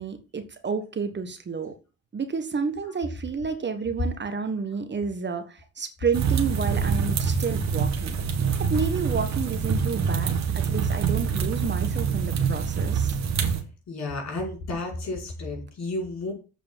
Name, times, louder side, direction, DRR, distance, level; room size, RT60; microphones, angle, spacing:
voice 1, 0.0-1.7 2.1-8.2 8.6-13.1, right 5 dB, 35° right, 8 dB, 1.4 m, -30 dB
sound 1, 6.1-13.6, right 6 dB, 65° right, 1.7 m, -25 dB
voice 2, 13.9-16.3, left 2 dB, 60° left, 0 dB, 5.3 m, -32 dB
8.1 x 5.0 x 7.3 m, 0.34 s
cardioid pair, 90°, 30 cm